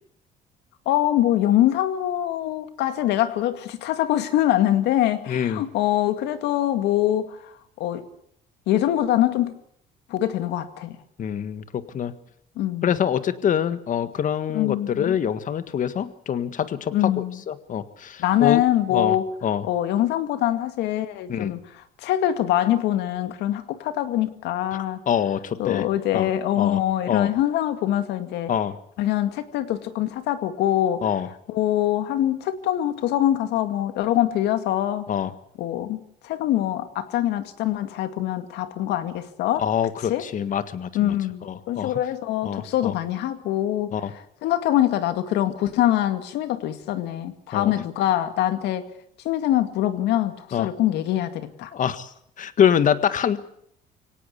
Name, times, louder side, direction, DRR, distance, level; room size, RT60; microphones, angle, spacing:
voice 1, 0.9-7.4 7.8-8.0 8.7-9.5 10.1-11.0 12.6-13.0 14.5-15.1 16.9-17.4 18.2-19.3 19.6-21.6 22.0-25.0 25.6-28.5 29.0-31.0 31.5-35.1 35.6-39.6 40.1-40.2 40.9-43.9 44.4-48.9 49.2-51.7, left 12 dB, 85° left, 9 dB, 2.2 m, -24 dB
voice 2, 5.3-5.6 11.2-12.1 12.8-18.6 18.9-19.2 19.4-19.6 21.3-21.5 24.7-25.9 26.1-26.3 26.6-26.8 27.1-27.3 28.5-28.8 31.0-31.3 35.1-35.3 39.6-41.1 41.4-42.0 42.4-42.9 43.9-44.1 47.5-47.7 50.5-50.7 51.7-52.1 52.4-53.4, left 8 dB, 50° left, 12 dB, 1.7 m, -25 dB
24.0 x 18.0 x 8.3 m, 0.70 s
cardioid pair, 110°, 17 cm